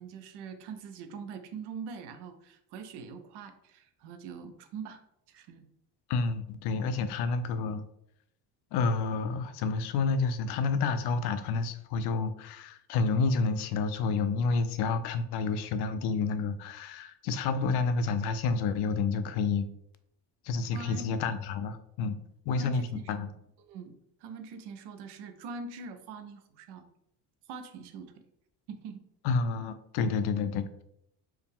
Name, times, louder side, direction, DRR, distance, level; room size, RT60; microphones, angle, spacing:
voice 1, 0.0-5.0 5.3-5.7 20.7-21.2 22.5-23.1 23.6-26.9 27.5-28.1 28.7-29.0, right 5 dB, 85° right, 7 dB, 0.7 m, -43 dB
voice 2, 6.1-7.8 8.7-19.7 20.4-22.2 22.5-22.8 23.1-23.3 29.2-30.7, left 4 dB, 80° left, 11 dB, 0.5 m, -29 dB
4.7 x 2.1 x 3.5 m, 0.76 s
cardioid pair, 180°, 39 cm